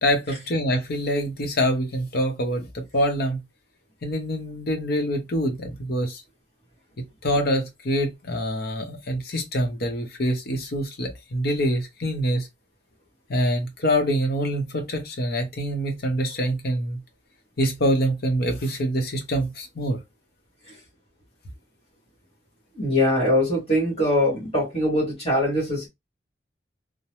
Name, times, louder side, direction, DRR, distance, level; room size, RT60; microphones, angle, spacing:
voice 1, 0.0-3.4 4.0-6.2 7.2-12.5 13.3-17.0 17.6-20.0, equal, 60° left, 0.8 m, -25 dB
voice 2, 22.7-25.9, left 1 dB, 35° left, 1.4 m, -22 dB
2.9 x 2.0 x 3.1 m
head